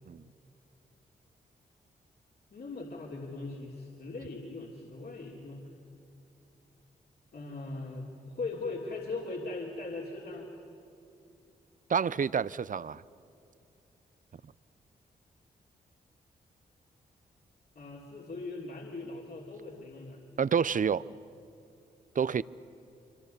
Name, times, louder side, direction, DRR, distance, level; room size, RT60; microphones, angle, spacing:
voice 1, 2.5-5.6 7.3-10.5 17.7-20.2, left 3 dB, 55° left, 3.2 m, -40 dB
voice 2, 11.9-13.0 20.4-21.0 22.2-22.4, right 7 dB, 45° right, 0.6 m, -28 dB
25.5 x 25.0 x 6.8 m
supercardioid pair, 40°, 19 cm